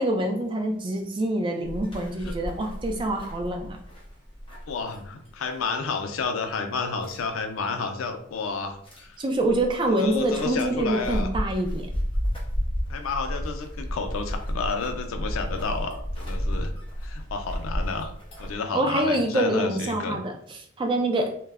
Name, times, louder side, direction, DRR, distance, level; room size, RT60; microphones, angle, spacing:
voice 1, 0.0-3.8 9.2-11.9 18.7-21.3, right 1 dB, 25° right, 3 dB, 0.3 m, -26 dB
sound 1, 1.6-5.3 5.6-5.7 7.0-7.2 8.8-9.1 9.5-18.6, equal, 25° left, 0.6 m, -32 dB
voice 2, 4.7-9.2 9.9-11.3 12.9-16.7 17.0-18.1 18.4-20.2, left 4 dB, 90° left, 6 dB, 0.4 m, -31 dB
2.2 x 2.0 x 3.4 m, 0.63 s
head